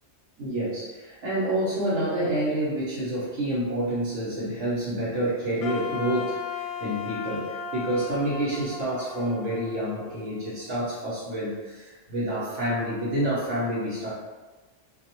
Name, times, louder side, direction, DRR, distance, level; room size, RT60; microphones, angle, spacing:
voice 1, 0.4-14.1, right 1 dB, 70° right, -7 dB, 1.2 m, -28 dB
Wind instrument woodwind instrument, 5.6-10.6, left 6 dB, 60° left, 0.7 m, -36 dB
4.3 x 2.0 x 2.9 m, 1.2 s
omnidirectional pair, 1.3 m